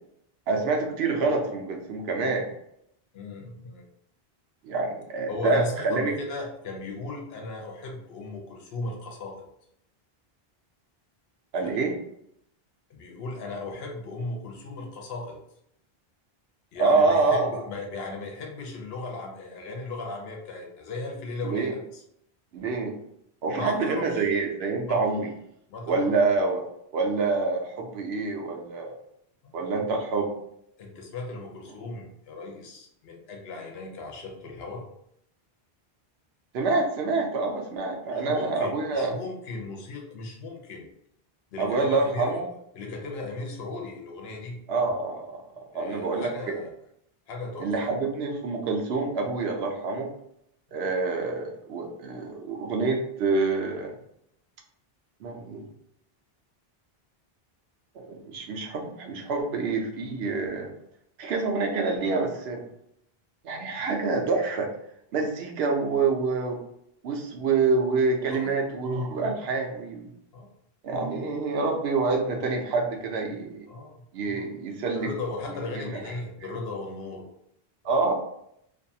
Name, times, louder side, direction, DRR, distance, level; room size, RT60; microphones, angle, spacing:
voice 1, 0.5-2.5 4.6-6.1 11.5-11.9 16.8-17.6 21.4-21.8 22.5-23.0 23.4-25.3 25.9-26.6 26.9-28.9 29.5-30.3 36.5-39.1 41.6-42.5 44.7-45.4 45.7-46.5 47.6-50.1 50.7-53.9 55.2-55.6 57.9-60.7 61.2-62.6 63.4-64.7 65.1-66.6 67.0-70.1 70.8-73.6 74.1-75.1 75.5-76.0 77.8-78.1, right 3 dB, 90° right, 2 dB, 0.8 m, -26 dB
voice 2, 3.1-3.8 5.3-9.5 11.6-11.8 12.9-15.4 16.7-22.0 23.5-24.3 24.9-25.0 25.7-26.1 29.4-29.6 30.8-34.9 38.1-40.9 41.5-42.4 42.7-44.6 45.7-46.7 47.3-47.9 50.7-50.8 68.3-68.6 70.3-70.5 73.7-74.0 74.9-77.3 77.8-78.1, left 2 dB, 80° left, 1 dB, 0.9 m, -37 dB
2.5 x 2.3 x 2.6 m, 0.74 s
omnidirectional pair, 1.0 m